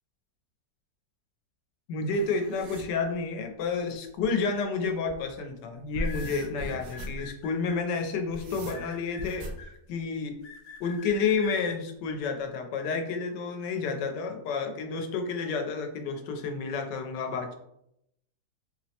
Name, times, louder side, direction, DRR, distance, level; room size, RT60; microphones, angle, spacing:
voice 1, 1.9-9.5 9.9-10.4 10.8-17.5, left 4 dB, 90° left, 5 dB, 1.2 m, -30 dB
sound 1, 2.1-2.9 4.2-4.3 4.8-5.2 5.7-7.3 8.0-9.6 11.1-11.5, equal, 65° right, 0.9 m, -38 dB
sound 2, 5.9-8.0 8.7-9.7 10.4-11.5, left 5 dB, 70° left, 1.1 m, -45 dB
4.3 x 2.0 x 2.7 m, 0.78 s
omnidirectional pair, 1.8 m